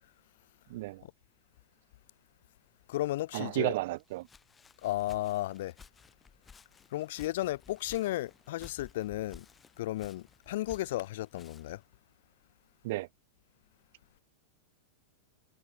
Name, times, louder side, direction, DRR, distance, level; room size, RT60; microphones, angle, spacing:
voice 1, 0.7-1.0 3.3-4.3 12.8-13.1, right 19 dB, 55° right, 0.8 m, -33 dB
voice 2, 2.9-3.7 4.8-5.7 6.9-9.5 9.8-11.8, left 15 dB, 65° left, 5.6 m, -34 dB
Walk footsteps, 3.9-11.9, left 5 dB, 15° left, 7.1 m, -56 dB
supercardioid pair, 155°, 0 cm